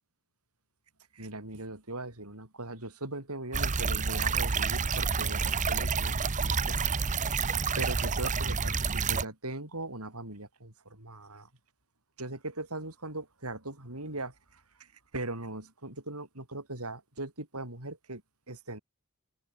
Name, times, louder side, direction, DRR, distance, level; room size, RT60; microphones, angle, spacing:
voice 1, 1.1-6.8 7.8-11.5 12.2-18.2 18.5-18.8, right 2 dB, 85° right, 7.5 m, -40 dB
sound 1, 3.5-9.2, right 5 dB, 35° right, 0.9 m, -29 dB
open air
head